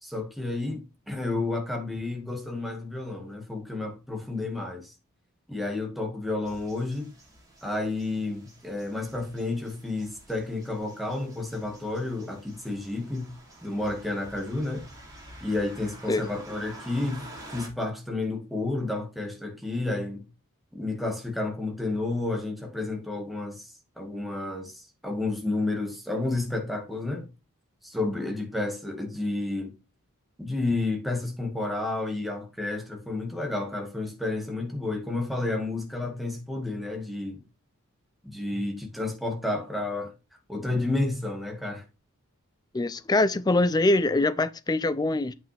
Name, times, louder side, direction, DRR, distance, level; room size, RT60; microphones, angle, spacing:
voice 1, 0.0-4.9 5.5-7.1 7.6-13.3 13.6-14.8 15.4-20.2 20.7-23.6 24.0-27.3 27.8-29.7 30.4-37.4 38.2-40.1 40.5-41.8, left 2 dB, ahead, 1.9 m, -31 dB
sound 1, 6.4-17.7, right 1 dB, 15° right, 3.0 m, -49 dB
voice 2, 42.7-45.3, left 2 dB, 20° left, 0.4 m, -23 dB
8.8 x 5.7 x 3.4 m
head